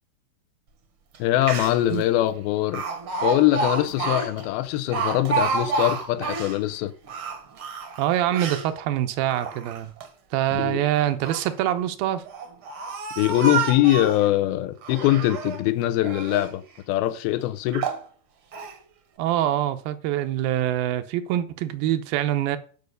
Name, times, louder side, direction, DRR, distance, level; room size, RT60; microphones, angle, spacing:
Speech, 1.1-1.2 1.4-2.0 2.7-6.6 7.0-8.7 9.2-10.1 11.0-11.5 12.2-14.3 14.8-15.6 16.0-16.5 17.1-17.2 17.7-18.0 18.5-18.8, right 4 dB, 60° right, 1.4 m, -29 dB
voice 1, 1.2-2.8 3.2-6.9 10.5-10.8 13.2-16.6 16.9-17.9, left 14 dB, 85° left, 2.7 m, -22 dB
voice 2, 8.0-9.9 10.3-12.2 19.2-22.6, right 12 dB, 80° right, 2.5 m, -25 dB
10.5 x 5.1 x 6.5 m
omnidirectional pair, 4.3 m